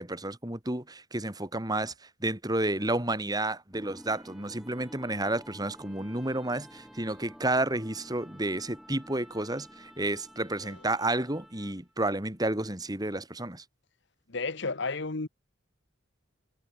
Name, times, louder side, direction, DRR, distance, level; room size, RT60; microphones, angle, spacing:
voice 1, 0.0-1.9 2.2-13.6, right 2 dB, 20° right, 3.3 m, -31 dB
sound 1, 3.7-11.9, equal, ahead, 5.2 m, -51 dB
voice 2, 14.3-15.3, left 3 dB, 60° left, 1.2 m, -32 dB
head